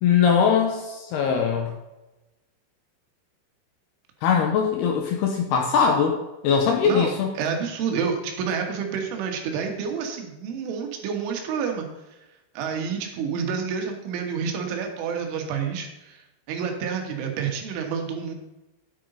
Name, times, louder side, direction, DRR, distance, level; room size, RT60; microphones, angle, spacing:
voice 1, 0.0-1.7 4.2-6.2 6.4-7.3, left 6 dB, 80° left, 3 dB, 2.4 m, -21 dB
voice 2, 6.8-11.9 12.6-16.2 16.5-18.3, right 6 dB, 75° right, 3 dB, 3.9 m, -29 dB
10.5 x 8.3 x 3.9 m, 1.0 s
omnidirectional pair, 5.9 m